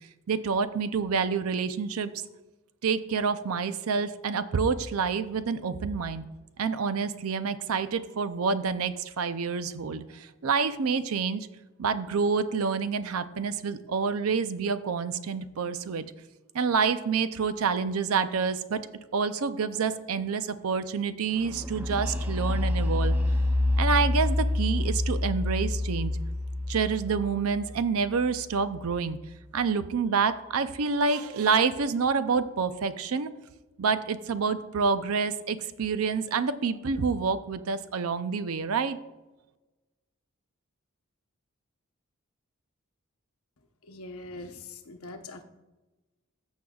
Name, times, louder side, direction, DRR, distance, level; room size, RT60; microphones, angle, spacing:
voice 1, 0.3-2.1 2.8-6.2 6.6-11.5 11.8-16.0 16.5-18.8 19.1-23.2 23.8-26.2 26.7-29.2 29.5-33.3 33.8-39.0, right 5 dB, 75° right, 12 dB, 0.5 m, -28 dB
sound 1, 21.4-29.1, left 1 dB, 10° right, 0.5 m, -28 dB
voice 2, 43.9-45.4, left 2 dB, 80° left, 6 dB, 0.9 m, -42 dB
14.5 x 6.4 x 2.3 m, 1.1 s
head